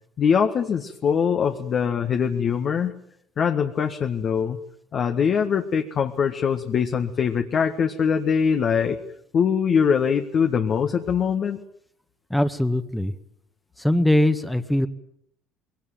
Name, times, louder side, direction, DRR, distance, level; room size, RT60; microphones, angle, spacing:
voice 1, 0.2-2.9 3.4-4.6 4.9-9.0 9.3-11.6, left 7 dB, 50° left, 4 dB, 1.7 m, -22 dB
voice 2, 12.3-13.1 13.8-14.9, left 1 dB, 5° left, 8 dB, 1.7 m, -21 dB
21.5 x 18.0 x 9.2 m, 0.73 s
hypercardioid pair, 70°, 0 cm